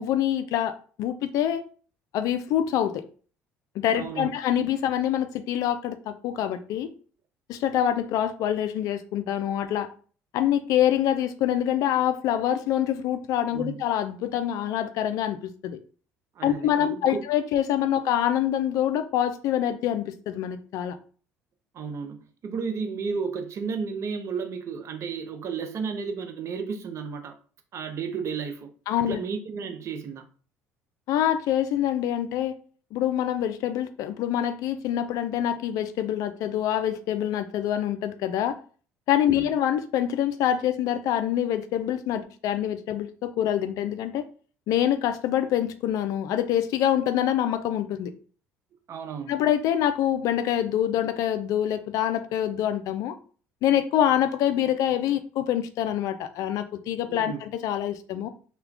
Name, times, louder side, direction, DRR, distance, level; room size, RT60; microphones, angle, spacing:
voice 1, 0.0-1.6 2.1-3.0 3.8-6.9 7.5-9.9 10.3-15.8 16.4-21.0 28.9-29.2 31.1-32.5 32.9-38.6 39.1-44.2 44.7-48.1 49.3-53.1 53.6-58.3, left 10 dB, 65° left, 0.3 m, -25 dB
voice 2, 3.9-4.4 9.5-9.6 13.5-13.8 16.4-17.2 21.7-27.4 27.7-30.3 39.3-39.6 48.9-49.3 57.1-57.4, right 5 dB, 50° right, 0.6 m, -33 dB
2.3 x 2.1 x 3.4 m
hypercardioid pair, 70°, 6 cm